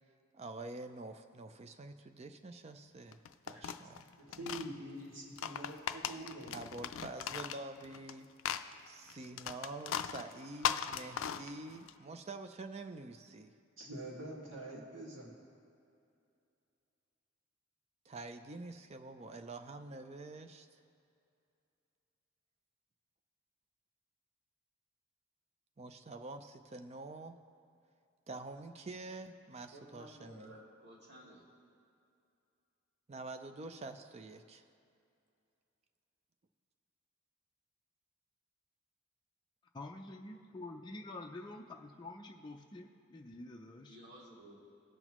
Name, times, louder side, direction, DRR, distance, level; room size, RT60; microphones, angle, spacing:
voice 1, 0.3-4.0 6.5-8.3 8.9-13.5 18.1-20.8 25.8-27.4 28.3-30.5 33.1-34.7, right 2 dB, 35° right, 7 dB, 0.5 m, -47 dB
sound 1, 3.1-4.7 5.2-8.1 8.4-11.9, left 8 dB, 80° left, 0.4 m, -38 dB
voice 2, 4.0-6.6 13.8-15.3, right 1 dB, 70° right, -4 dB, 2.1 m, -46 dB
voice 3, 29.7-31.4 43.8-44.7, equal, 55° right, -6 dB, 2.4 m, -55 dB
voice 4, 39.7-44.0, left 2 dB, 20° left, 0 dB, 0.5 m, -48 dB
18.0 x 6.0 x 3.0 m, 2.5 s
head